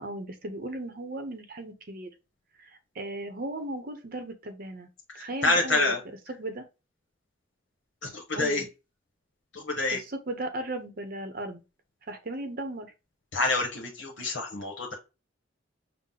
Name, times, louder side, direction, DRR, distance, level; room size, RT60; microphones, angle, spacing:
voice 1, 0.0-2.1 2.6-4.9 5.1-5.9 6.3-6.6 8.3-8.7 9.9-11.6 12.0-12.9, right 2 dB, 55° right, 0.7 m, -36 dB
voice 2, 5.1-6.0 8.0-8.6 9.5-10.0 13.3-14.9, left 2 dB, 80° left, 0.9 m, -27 dB
5.7 x 2.1 x 3.7 m
head